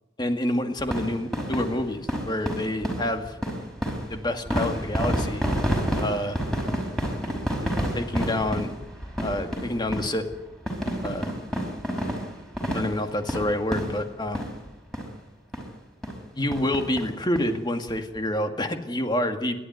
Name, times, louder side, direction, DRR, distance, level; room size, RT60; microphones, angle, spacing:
voice 1, 0.2-3.4 4.1-5.4 6.0-6.4 7.6-7.7 7.9-8.7 9.2-10.2 11.0-11.4 12.7-14.4 16.4-19.6, left 1 dB, 25° left, 6 dB, 2.1 m, -28 dB
sound 1, 0.8-14.7 14.9-15.1 15.5-15.6 16.0-16.2 16.5-17.5 17.9-18.0 18.2-18.3, equal, 5° left, 5.2 m, -29 dB
29.5 x 12.5 x 9.5 m, 1.0 s
head